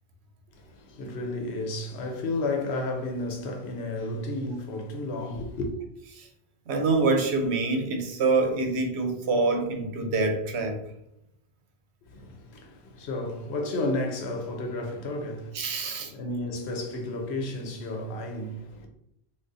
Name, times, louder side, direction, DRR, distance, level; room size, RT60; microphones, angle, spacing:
voice 1, 0.5-5.7 12.0-18.9, left 2 dB, 80° left, 0.9 m, -32 dB
voice 2, 6.7-10.8 15.5-16.1, right 3 dB, 80° right, 0.9 m, -25 dB
2.6 x 2.4 x 3.5 m
omnidirectional pair, 1.1 m